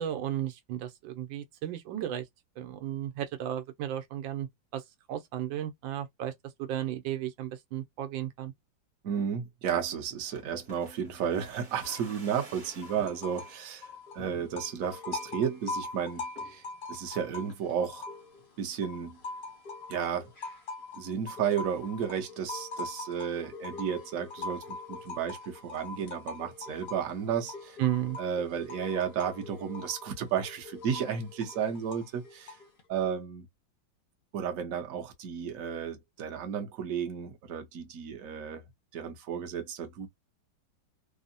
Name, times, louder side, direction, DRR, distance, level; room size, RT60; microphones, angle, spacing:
voice 1, 0.0-2.2 2.6-4.5 4.7-4.8 5.1-6.3 6.6-8.5 27.8-28.2, right 11 dB, 85° right, 1.4 m, -34 dB
voice 2, 9.0-16.6 16.9-18.1 18.6-19.2 19.9-20.3 20.9-27.8 28.2-32.6 32.9-33.5 34.3-38.6 38.9-40.1, right 8 dB, 60° right, 1.0 m, -33 dB
sound 1, 10.4-13.6 14.2-14.8 15.2-15.3 15.5-15.9 16.4-16.7 17.1-17.8 18.1-18.2, equal, 30° right, 1.0 m, -51 dB
sound 2, 11.8-12.5 12.8-13.5 13.8-14.5 14.8-15.5 15.8-16.5 16.8-17.5 17.8-18.5 18.8-19.5 19.8-20.5 20.8-21.5 21.8-22.5 22.8-23.5 23.8-24.5 24.8-25.5 25.8-26.5 26.8-27.5 27.8-28.5 28.8-29.5 29.8-30.5 30.8-31.5, left 8 dB, 90° left, 1.4 m, -50 dB
sound 3, 13.0-13.6 13.9-18.6 19.0-32.8, left 3 dB, 45° left, 0.7 m, -42 dB
3.5 x 2.0 x 2.5 m
omnidirectional pair, 2.1 m